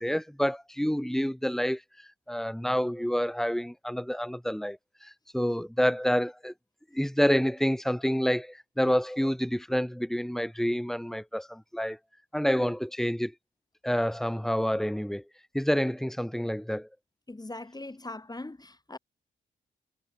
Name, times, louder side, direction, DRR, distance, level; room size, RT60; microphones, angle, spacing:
voice 1, 0.0-6.5 6.9-12.0 12.3-13.3 13.8-15.2 15.5-16.9, equal, ahead, 4.4 m, -28 dB
voice 2, 17.3-19.0, left 2 dB, 20° left, 4.6 m, -40 dB
cardioid pair, 65°, 20 cm